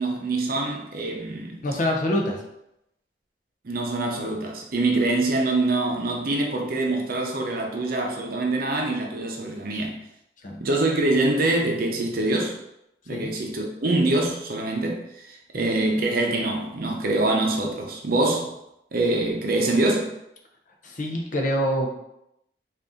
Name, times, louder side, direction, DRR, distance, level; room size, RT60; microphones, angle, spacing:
voice 1, 0.0-1.6 3.6-9.9 10.6-12.6 13.1-18.5 18.9-20.1, right 2 dB, 55° right, 1 dB, 0.7 m, -24 dB
voice 2, 1.6-2.4 10.4-10.6 13.1-13.3 15.5-15.6 20.8-21.9, equal, 45° left, 1 dB, 0.6 m, -25 dB
3.9 x 2.6 x 3.5 m, 0.82 s
head